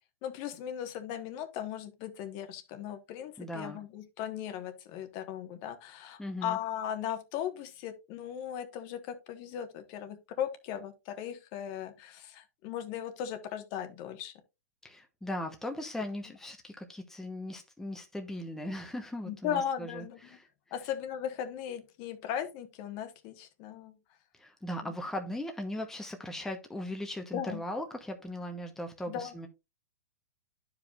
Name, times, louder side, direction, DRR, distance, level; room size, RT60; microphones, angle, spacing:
voice 1, 0.2-14.3 19.3-20.2 20.7-23.9 24.8-24.9 27.3-27.6 29.1-29.3, left 10 dB, 45° left, 1.3 m, -37 dB
voice 2, 3.4-3.8 6.2-6.6 14.8-20.5 24.3-29.5, left 1 dB, 5° left, 1.0 m, -38 dB
12.0 x 4.9 x 2.4 m
hypercardioid pair, 120°, 9 cm